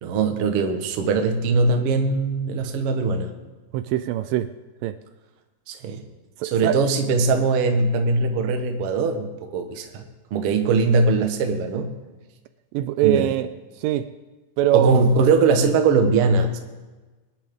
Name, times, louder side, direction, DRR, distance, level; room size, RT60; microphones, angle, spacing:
voice 1, 0.0-3.3 5.7-6.0 6.4-10.0 10.3-11.9 13.0-13.3 14.7-16.6, right 4 dB, 60° right, 5 dB, 1.6 m, -21 dB
voice 2, 3.7-4.5 4.8-5.0 6.4-6.8 12.7-13.5 13.8-14.1 14.6-15.0, right 13 dB, 80° right, 11 dB, 2.1 m, -22 dB
23.0 x 10.5 x 3.6 m, 1.2 s
omnidirectional pair, 4.0 m